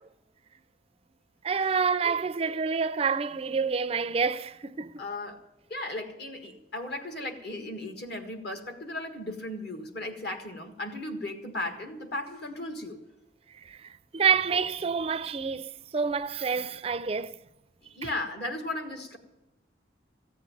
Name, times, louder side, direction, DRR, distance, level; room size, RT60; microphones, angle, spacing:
voice 1, 1.4-5.0 13.6-17.4, right 5 dB, 30° right, 0.4 m, -28 dB
voice 2, 5.0-5.4 5.7-13.0 17.8-19.2, left 1 dB, 60° left, 1.7 m, -36 dB
14.5 x 8.2 x 9.1 m
head